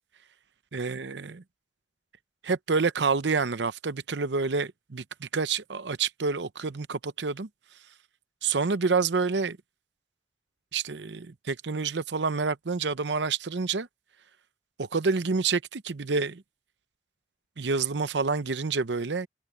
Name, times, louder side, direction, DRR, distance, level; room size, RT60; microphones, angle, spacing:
voice 1, 0.7-1.4 2.4-7.5 8.4-9.6 10.7-13.9 14.8-16.4 17.6-19.3, right 4 dB, 80° right, 0.7 m, -28 dB
head